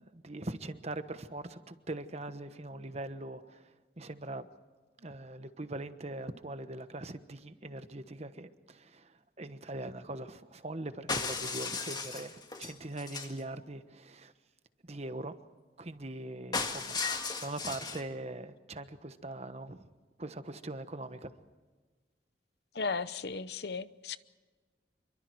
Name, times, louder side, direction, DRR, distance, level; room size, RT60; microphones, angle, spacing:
voice 1, 0.0-4.5 5.0-14.3 14.8-15.4 15.8-17.0 17.4-19.9 20.2-21.3, right 2 dB, 40° right, 1.2 m, -42 dB
sound 1, 11.1-13.4 16.5-18.0, left 4 dB, 25° left, 1.9 m, -35 dB
voice 2, 22.7-24.2, left 4 dB, 65° left, 0.8 m, -35 dB
27.0 x 24.0 x 4.7 m
head